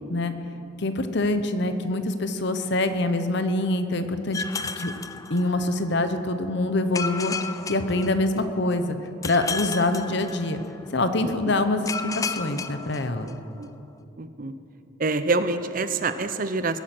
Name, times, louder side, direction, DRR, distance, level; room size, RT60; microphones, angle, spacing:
voice 1, 0.8-4.4 4.8-4.9 5.3-7.4 7.7-9.0 9.2-10.6 10.9-13.3, left 2 dB, 55° left, 9 dB, 0.9 m, -25 dB
sound 1, 4.3-5.9 6.9-8.7 9.2-10.9 11.9-13.6, left 4 dB, 15° left, 0.3 m, -33 dB
voice 2, 13.2-13.7 14.2-14.5 15.0-16.8, right 3 dB, 40° right, 11 dB, 0.6 m, -27 dB
20.5 x 8.9 x 6.1 m, 2.8 s
head